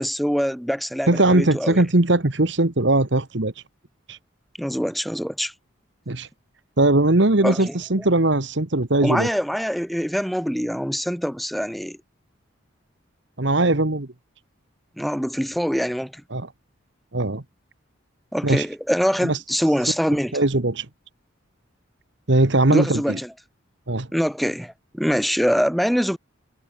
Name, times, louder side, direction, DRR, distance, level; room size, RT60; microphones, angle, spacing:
voice 1, 0.0-1.8 4.6-5.5 7.4-8.0 9.0-12.0 15.0-16.2 18.3-20.4 22.7-23.3 24.1-26.2, equal, ahead, 5.1 m, -24 dB
voice 2, 1.1-3.5 4.1-4.2 6.1-6.3 6.8-9.3 13.4-14.1 16.3-16.5 17.1-17.4 18.4-18.6 19.2-19.4 20.3-20.9 22.3-23.2 23.9-24.1, right 2 dB, 60° right, 1.5 m, -20 dB
head